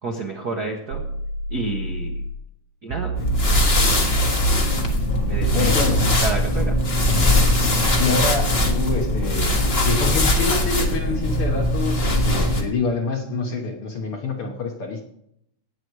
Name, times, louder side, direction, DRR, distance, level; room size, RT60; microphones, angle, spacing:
voice 1, 0.0-1.0 1.5-2.2 2.8-3.3 3.8-4.0 5.3-5.7 6.2-6.7 8.1-8.2, right 3 dB, 55° right, 1 dB, 1.1 m, -30 dB
sound 1, 0.9-2.4 2.9-6.4, right 3 dB, 75° right, 1.6 m, -29 dB
sound 2, 3.1-12.6, left 1 dB, 30° left, 1.0 m, -20 dB
voice 2, 5.5-6.1 8.0-15.0, left 3 dB, 55° left, 3 dB, 1.7 m, -26 dB
18.0 x 7.8 x 4.7 m, 0.75 s
omnidirectional pair, 3.7 m